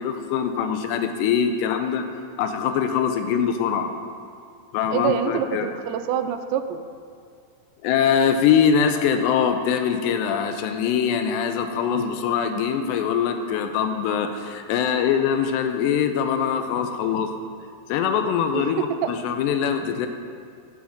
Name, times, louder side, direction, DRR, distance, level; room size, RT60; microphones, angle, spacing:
voice 1, 0.0-2.1 2.4-3.9 4.7-5.7 7.8-17.3 17.9-20.1, left 7 dB, 80° left, 7 dB, 2.7 m, -23 dB
voice 2, 4.9-6.8 18.5-18.7 19.0-19.1, right 9 dB, 85° right, 9 dB, 2.7 m, -26 dB
9.6 x 6.3 x 7.1 m, 2.3 s
omnidirectional pair, 5.1 m